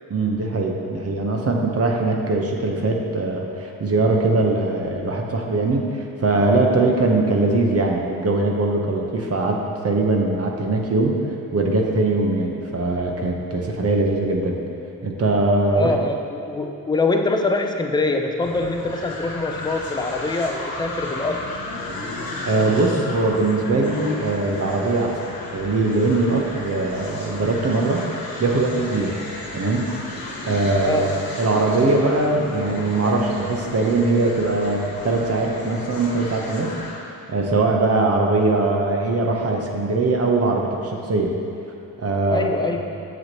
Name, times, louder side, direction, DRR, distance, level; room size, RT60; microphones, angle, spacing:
voice 1, 0.1-11.2 11.5-14.6 15.0-15.9 22.5-25.1 25.5-28.0 28.4-29.2 29.5-29.9 30.5-31.1 31.4-36.7 37.3-41.3 42.0-42.7, right 2 dB, 40° right, 1 dB, 0.9 m, -21 dB
voice 2, 15.7-21.4 30.8-31.1 42.3-42.8, left 3 dB, 10° left, 3 dB, 0.5 m, -24 dB
sound 1, 18.4-37.1, left 2 dB, 65° left, 1.3 m, -34 dB
7.3 x 6.2 x 2.9 m, 2.8 s
supercardioid pair, 65°, 39 cm